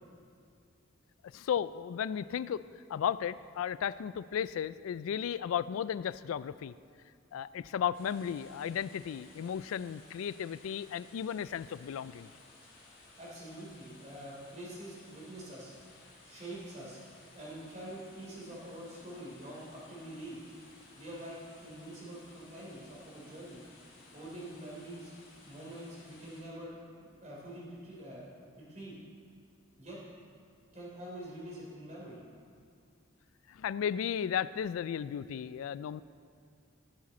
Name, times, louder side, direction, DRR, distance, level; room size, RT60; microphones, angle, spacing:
voice 1, 1.3-6.7 7.3-12.3 33.5-36.0, left 8 dB, 90° left, 16 dB, 0.3 m, -34 dB
sound 1, 7.9-26.4, left 2 dB, 65° left, 3.6 m, -58 dB
voice 2, 13.2-15.7 16.2-17.0 17.3-20.4 20.9-23.6 24.1-25.1 25.4-26.7 27.0-28.3 28.6-29.0 29.8-30.0 30.7-32.2, right 1 dB, 35° right, -5 dB, 3.2 m, -45 dB
sound 2, 17.4-30.2, left 1 dB, 5° right, 2.6 m, -64 dB
18.0 x 7.5 x 4.2 m, 2.3 s
head